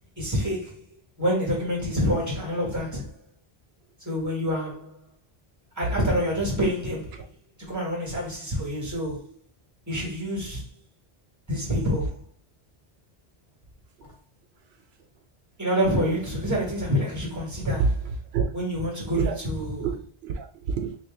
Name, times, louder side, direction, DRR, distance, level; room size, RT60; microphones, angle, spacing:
voice 1, 0.2-0.8 1.2-3.1 4.0-5.0 5.8-7.2 7.6-9.3 9.9-10.6 11.5-12.2 15.6-17.8 18.5-19.9, equal, 15° right, 1.5 m, -27 dB
voice 2, 17.8-18.5 19.1-19.4 19.8-21.0, right 5 dB, 80° right, 0.8 m, -28 dB
3.0 x 3.0 x 3.5 m
omnidirectional pair, 1.0 m